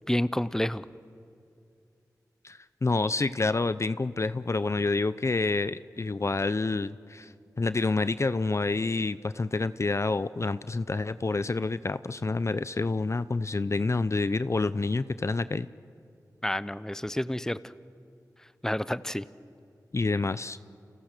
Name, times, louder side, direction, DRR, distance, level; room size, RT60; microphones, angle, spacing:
voice 1, 0.1-0.8 16.4-17.7 18.6-19.3, left 1 dB, 10° left, 16 dB, 0.8 m, -29 dB
voice 2, 2.4-7.3 7.6-15.7 19.9-20.6, left 3 dB, 45° left, 15 dB, 0.6 m, -28 dB
30.0 x 28.0 x 6.7 m, 2.4 s
cardioid pair, 45°, 7 cm